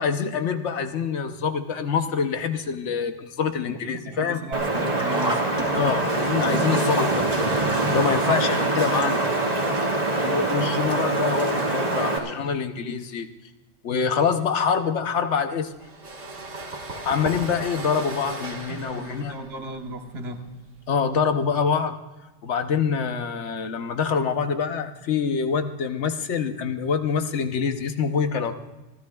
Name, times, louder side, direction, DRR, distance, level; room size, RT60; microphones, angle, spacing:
voice 1, 0.0-4.4 5.7-7.3 7.9-9.2 10.2-13.3 13.8-15.7 17.0-19.3 20.9-22.0 22.4-28.5, left 6 dB, 80° left, 7 dB, 1.1 m, -25 dB
voice 2, 3.9-5.5 8.2-9.3 16.4-16.5 18.7-20.6, right 2 dB, 65° right, 4 dB, 1.4 m, -35 dB
Wind, 4.5-12.2, right 2 dB, 35° right, 1.8 m, -24 dB
Sink (filling or washing), 4.6-9.6 9.9-10.0 11.0-11.1 11.4-11.5, right 1 dB, 5° right, 2.7 m, -32 dB
sound 1, 15.8-21.3, right 2 dB, 80° right, 1.9 m, -37 dB
27.0 x 13.0 x 2.3 m, 1.1 s
omnidirectional pair, 1.2 m